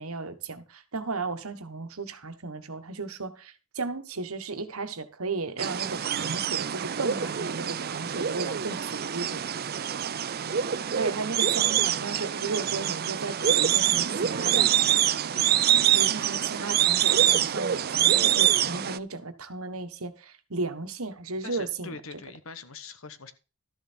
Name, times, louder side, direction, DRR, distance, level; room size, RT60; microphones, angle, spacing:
voice 1, 0.0-9.4 10.9-14.7 15.9-21.9, right 3 dB, 75° right, 1.4 m, -35 dB
sound 1, 5.6-19.0, right 10 dB, 45° right, 0.5 m, -25 dB
voice 2, 21.4-23.3, left 4 dB, 65° left, 1.2 m, -43 dB
13.0 x 7.1 x 4.4 m
head